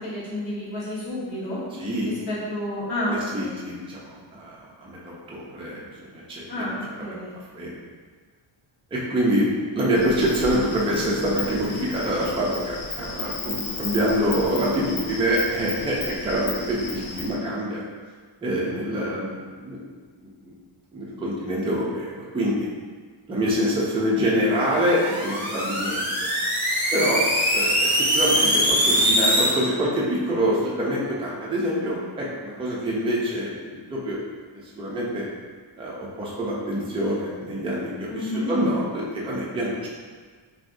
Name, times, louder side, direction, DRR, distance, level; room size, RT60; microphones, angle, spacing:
voice 1, 0.0-1.6 2.0-3.6 6.5-7.4 38.1-38.5, left 1 dB, 55° left, -8 dB, 1.1 m, -30 dB
voice 2, 1.7-2.1 3.1-5.8 6.1-6.4 7.0-7.2 7.5-7.8 8.9-17.8 18.4-19.8 20.2-20.3 20.9-22.7 23.3-26.3 26.9-27.2 27.5-34.2 34.7-35.3 35.8-39.9, equal, 10° right, -6 dB, 0.4 m, -26 dB
Insect, 9.9-17.3, left 3 dB, 85° left, 0.7 m, -35 dB
sound 1, 24.7-29.5, equal, 5° left, 0.8 m, -22 dB
3.4 x 2.6 x 2.5 m, 1.5 s
wide cardioid pair, 155°, 49 cm